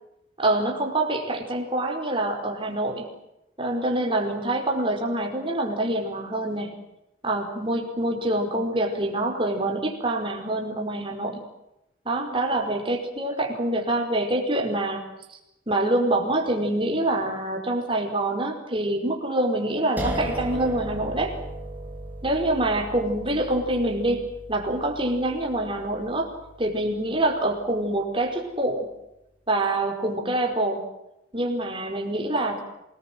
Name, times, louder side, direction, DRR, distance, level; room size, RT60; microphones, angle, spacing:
voice 1, 0.4-3.1 3.6-6.8 7.2-11.5 12.0-15.0 15.3-15.4 15.7-21.3 22.2-26.3 26.6-28.9 29.5-30.8 31.3-32.6, right 1 dB, 25° right, 3 dB, 5.0 m, -26 dB
sound 1, 20.0-26.9, right 1 dB, 10° right, 4.2 m, -36 dB
27.0 x 20.0 x 7.8 m, 0.88 s
head